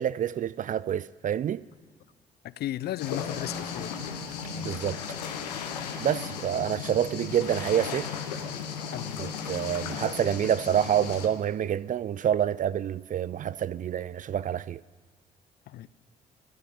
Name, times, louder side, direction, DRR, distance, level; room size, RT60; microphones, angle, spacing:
voice 1, 0.0-1.6 4.5-5.0 6.0-8.1 9.2-14.8, right 10 dB, 40° right, 0.4 m, -27 dB
voice 2, 2.4-4.0 8.9-9.2 15.7-15.9, left 13 dB, 55° left, 0.4 m, -35 dB
sound 1, 3.0-11.3, left 7 dB, 85° left, 0.8 m, -35 dB
12.5 x 6.5 x 7.7 m
hypercardioid pair, 45°, 20 cm